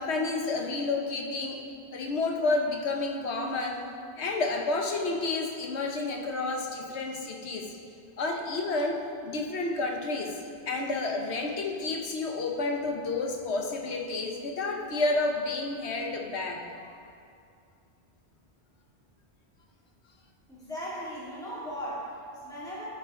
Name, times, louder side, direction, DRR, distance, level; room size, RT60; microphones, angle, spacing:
voice 1, 0.0-1.7 1.9-3.9 4.2-7.7 8.2-10.4 10.7-16.9, left 3 dB, 90° left, 2 dB, 1.2 m, -30 dB
voice 2, 20.5-22.8, equal, 5° left, -9 dB, 2.3 m, -38 dB
16.0 x 5.5 x 3.7 m, 2.4 s
omnidirectional pair, 1.1 m